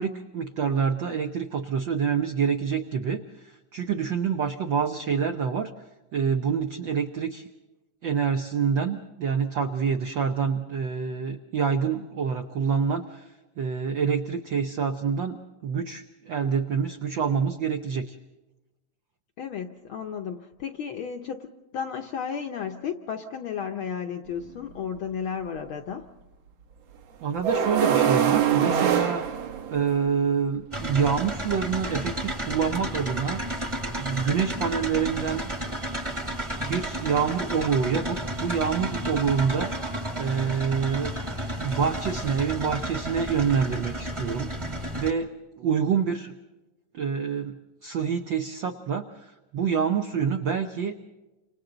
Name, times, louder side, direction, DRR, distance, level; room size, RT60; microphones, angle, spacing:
voice 1, 0.0-5.7 6.1-7.5 8.0-13.3 13.6-18.2 27.2-29.2 29.7-33.4 34.0-35.5 36.6-39.7 40.2-41.1 41.6-45.3 45.6-46.3 46.9-51.0, right 6 dB, 85° right, 5 dB, 1.0 m, -27 dB
voice 2, 19.4-26.1, left 7 dB, 70° left, 4 dB, 1.3 m, -33 dB
sound 1, 24.3-24.4 27.4-30.1, right 8 dB, 65° right, 2.2 m, -23 dB
sound 2, 30.7-45.1, right 1 dB, 15° right, 1.1 m, -32 dB
29.5 x 26.5 x 3.9 m, 1.1 s
omnidirectional pair, 3.3 m